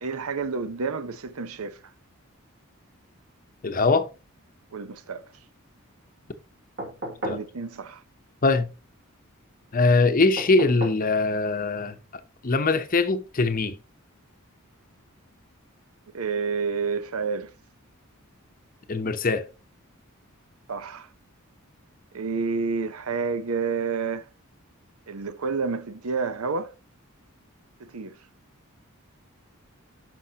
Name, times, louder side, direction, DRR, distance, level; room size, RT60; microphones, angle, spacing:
voice 1, 0.0-1.8 4.7-5.3 7.3-8.0 16.1-17.5 20.7-21.1 22.1-24.3 25.1-26.7 27.8-28.2, right 5 dB, 80° right, 0.7 m, -29 dB
voice 2, 3.6-4.1 7.2-7.4 8.4-8.7 9.7-11.9 12.4-13.7 18.9-19.4, left 3 dB, 40° left, 0.8 m, -22 dB
sound 1, 6.8-7.5 10.4-11.1 12.7-12.8, right 1 dB, 60° right, 2.9 m, -34 dB
12.0 x 5.3 x 2.8 m
head